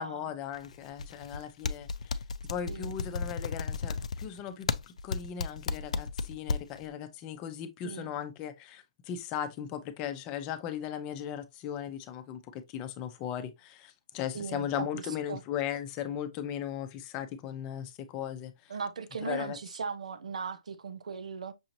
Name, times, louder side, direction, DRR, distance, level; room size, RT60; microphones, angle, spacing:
voice 1, 0.0-18.7 19.2-19.6, left 9 dB, 25° left, 0.6 m, -37 dB
sound 1, 0.5-1.4 1.6-6.9, left 4 dB, 85° left, 0.4 m, -33 dB
voice 2, 2.7-3.0 7.8-8.1 14.3-15.0 15.3-15.4 18.7-21.5, right 5 dB, 85° right, 0.6 m, -38 dB
6.2 x 2.9 x 2.6 m
hypercardioid pair, 155°, 4 cm